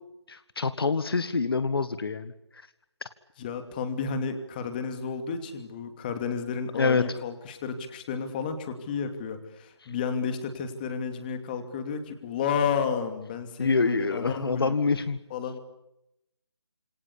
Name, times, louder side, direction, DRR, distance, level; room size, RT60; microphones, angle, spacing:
voice 1, 0.3-2.3 6.8-7.0 13.6-15.2, left 4 dB, 60° left, 12 dB, 1.7 m, -26 dB
voice 2, 3.4-14.8 15.3-15.6, left 6 dB, 20° left, 7 dB, 2.7 m, -32 dB
27.5 x 24.5 x 8.6 m, 0.86 s
figure-of-eight pair, 165°, 14 cm